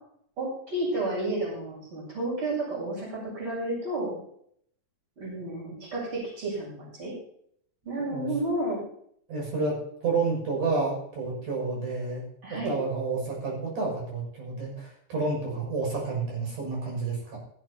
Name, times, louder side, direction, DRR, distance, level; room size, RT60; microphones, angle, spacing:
voice 1, 0.4-4.2 5.2-7.2 7.9-8.8 12.4-12.7, right 2 dB, 35° right, -5 dB, 8.6 m, -31 dB
voice 2, 9.3-9.8 10.0-12.2 12.5-17.4, right 4 dB, 65° right, -2 dB, 8.2 m, -30 dB
17.0 x 16.5 x 2.9 m, 0.67 s
omnidirectional pair, 4.0 m